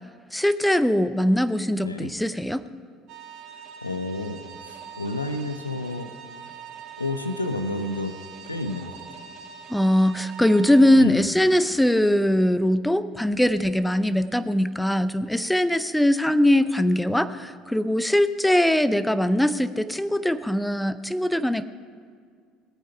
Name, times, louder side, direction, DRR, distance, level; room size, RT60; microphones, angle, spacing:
voice 1, 0.3-2.6 9.7-21.6, left 1 dB, 5° left, 13 dB, 0.6 m, -21 dB
voice 2, 1.8-2.1 3.5-6.1 7.0-8.2 8.5-9.3 11.0-11.3, left 2 dB, 85° left, 9 dB, 0.6 m, -31 dB
sound 1, 3.1-11.0, right 8 dB, 50° right, 1.9 m, -43 dB
18.5 x 8.8 x 5.7 m, 2.1 s
figure-of-eight pair, 60°, 0 cm